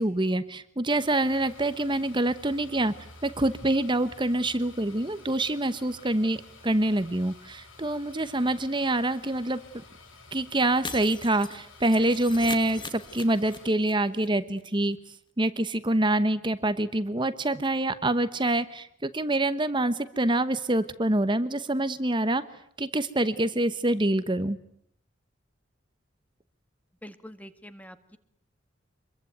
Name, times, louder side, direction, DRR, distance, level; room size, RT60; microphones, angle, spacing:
voice 1, 0.0-2.9 3.2-9.6 10.3-15.0 15.4-22.4 22.8-24.6, right 1 dB, 25° right, 13 dB, 1.1 m, -26 dB
sound 1, 0.9-13.7, left 2 dB, 85° left, 7.8 m, -51 dB
Shatter, 10.8-13.9 14.2-14.3 14.6-14.7, left 4 dB, 25° left, 1.9 m, -40 dB
voice 2, 27.0-28.2, equal, 10° left, 10 dB, 1.9 m, -45 dB
26.5 x 22.5 x 9.4 m, 0.68 s
head